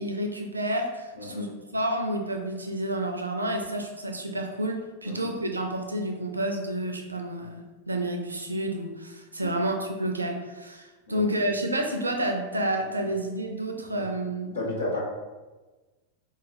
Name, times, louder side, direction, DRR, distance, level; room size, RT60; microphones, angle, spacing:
voice 1, 0.0-14.6, right 1 dB, 80° right, 4 dB, 0.4 m, -30 dB
voice 2, 1.1-1.5 5.0-5.3 9.4-9.6 11.1-11.3 13.9-14.0 14.5-15.0, left 2 dB, 80° left, -7 dB, 1.3 m, -33 dB
3.8 x 2.8 x 2.6 m, 1.2 s
figure-of-eight pair, 90°, 0 cm